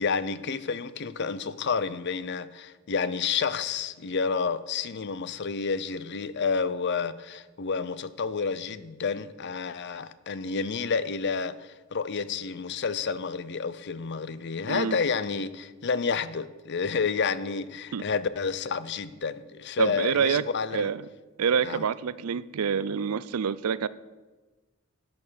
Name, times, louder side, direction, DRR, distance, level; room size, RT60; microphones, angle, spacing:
voice 1, 0.0-20.9 21.6-21.9, left 5 dB, 50° left, 15 dB, 0.6 m, -30 dB
voice 2, 14.7-15.0 17.9-18.0 19.8-20.4 20.7-21.0 21.4-23.9, right 7 dB, 85° right, 17 dB, 0.5 m, -27 dB
13.0 x 8.8 x 6.3 m, 1.2 s
head